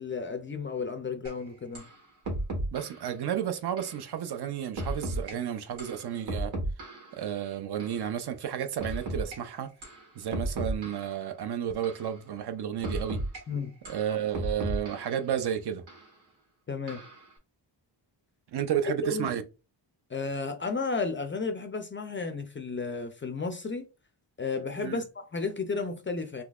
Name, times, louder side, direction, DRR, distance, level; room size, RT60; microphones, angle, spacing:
voice 1, 0.0-1.9 13.5-13.7 16.7-17.0 19.0-19.3 20.1-23.9 24.4-26.4, left 4 dB, 30° left, 0.3 m, -33 dB
sound 1, 1.2-1.3 1.7-1.9 2.2-3.0 3.8-4.0 4.8-5.3 5.8-7.2 7.8-8.0 8.8-9.4 9.8-10.0 10.3-11.2 11.8-12.1 12.8-13.4 13.8-15.2 15.9-16.0 16.9-17.2, right 1 dB, 85° right, 1.7 m, -34 dB
voice 2, 2.7-6.5 7.1-9.7 10.2-13.2 13.9-15.8 18.5-19.4 24.8-25.0, right 9 dB, 60° right, 0.5 m, -32 dB
3.9 x 2.8 x 2.3 m
wide cardioid pair, 145°, 45 cm